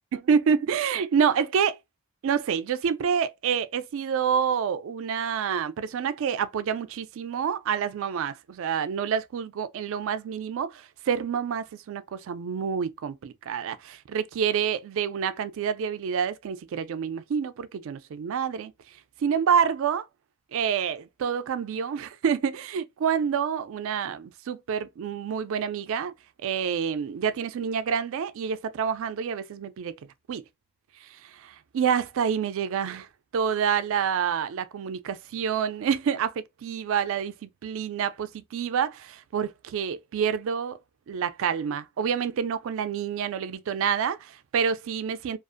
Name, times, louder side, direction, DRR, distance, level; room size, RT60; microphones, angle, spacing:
voice 1, 0.1-1.8 2.2-18.7 19.2-20.1 20.5-26.1 26.4-29.9 30.3-30.4 31.0-33.1 33.3-40.8 41.1-45.4, right 7 dB, 65° right, 0.3 m, -28 dB
2.5 x 2.4 x 2.4 m
head